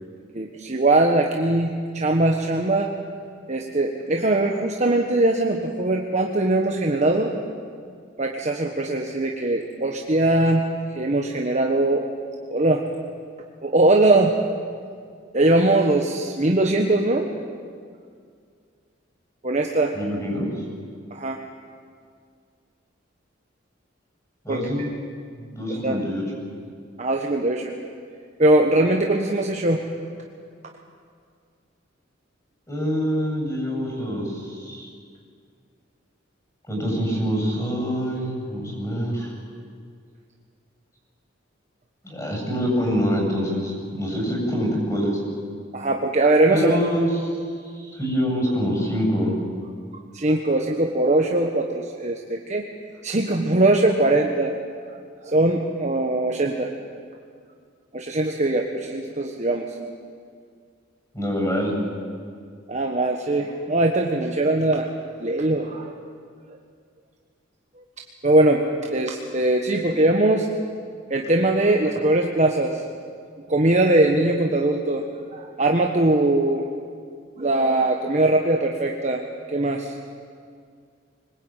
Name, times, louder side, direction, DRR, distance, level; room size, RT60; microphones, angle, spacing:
voice 1, 0.3-2.9 3.5-7.3 8.2-10.6 10.9-12.1 12.5-12.9 13.6-14.4 15.3-17.3 19.4-19.9 21.1-21.4 24.5-24.9 25.7-26.0 27.0-27.7 28.4-29.8 45.7-46.8 50.1-52.7 53.0-54.5 54.9-56.7 57.9-59.7 62.7-64.9 65.2-65.9 66.5-66.6 68.2-70.5 71.1-72.8 73.5-75.0 75.3-76.7 77.4-79.2 79.5-79.9, right 2 dB, 40° right, 1 dB, 1.4 m, -21 dB
voice 2, 19.9-20.5 24.4-24.8 25.4-26.2 32.7-34.9 36.7-39.3 42.0-45.2 46.5-47.1 47.8-49.4 61.1-61.8, equal, 15° left, 0 dB, 8.0 m, -25 dB
24.5 x 20.0 x 9.2 m, 2.1 s
head